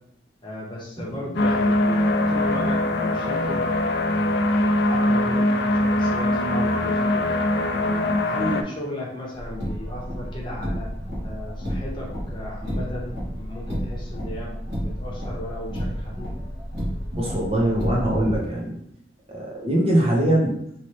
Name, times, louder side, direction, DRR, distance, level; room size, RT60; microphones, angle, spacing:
voice 1, 0.4-3.6 4.0-7.3 7.7-10.9 11.2-16.3, left 1 dB, 25° left, -4 dB, 0.8 m, -35 dB
sound 1, 1.4-8.6, left 1 dB, 60° left, 0.4 m, -22 dB
Car, 9.3-18.4, equal, 65° right, 1.4 m, -31 dB
voice 2, 17.1-18.7 19.3-20.8, right 1 dB, 30° right, -3 dB, 0.8 m, -23 dB
3.1 x 3.0 x 2.9 m, 0.71 s
head